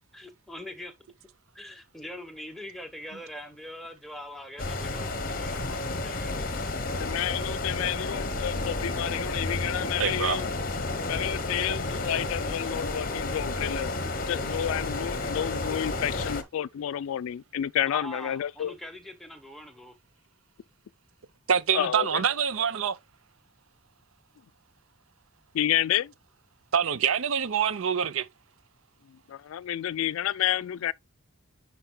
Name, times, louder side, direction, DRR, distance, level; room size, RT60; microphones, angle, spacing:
voice 1, 0.1-0.9 1.5-6.7 17.9-20.0, equal, ahead, 0.9 m, -42 dB
sound 1, 4.6-16.4, left 2 dB, 40° left, 0.9 m, -31 dB
voice 2, 7.0-10.5 11.1-13.9 14.2-18.7 21.7-22.2 25.5-26.1 29.1-30.9, left 11 dB, 75° left, 0.3 m, -30 dB
voice 3, 10.0-10.4 21.5-23.0 26.7-28.3, right 7 dB, 70° right, 0.6 m, -25 dB
10.5 x 4.6 x 2.2 m
head